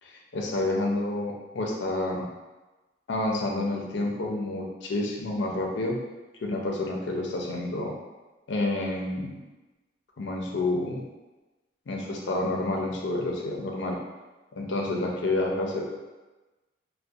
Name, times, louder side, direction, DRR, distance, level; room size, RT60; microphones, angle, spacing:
voice 1, 0.0-2.3 3.1-6.0 6.4-7.9 8.5-9.4 10.2-11.0 11.9-14.0 14.6-16.0, left 2 dB, 70° left, 0 dB, 0.4 m, -29 dB
2.3 x 2.1 x 2.6 m, 1.2 s
head